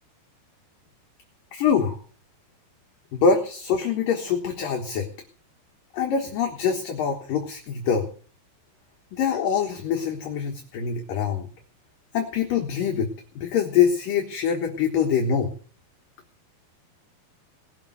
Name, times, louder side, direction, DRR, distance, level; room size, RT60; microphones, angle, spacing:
voice 1, 1.5-2.0 3.1-5.1 5.9-8.1 9.1-11.5 12.1-15.5, left 6 dB, 65° left, 3 dB, 2.7 m, -24 dB
19.5 x 6.9 x 7.8 m, 0.43 s
omnidirectional pair, 4.8 m